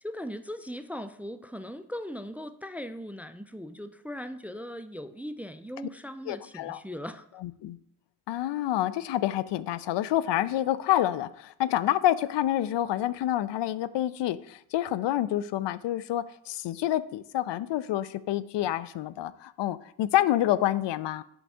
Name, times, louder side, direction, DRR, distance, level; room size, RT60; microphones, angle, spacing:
voice 1, 0.0-7.4, equal, 5° right, 11 dB, 0.4 m, -39 dB
voice 2, 6.3-6.8 7.4-7.8 8.3-21.2, left 13 dB, 65° left, 16 dB, 0.5 m, -28 dB
5.9 x 5.4 x 3.5 m, 0.70 s
supercardioid pair, 50°, 47 cm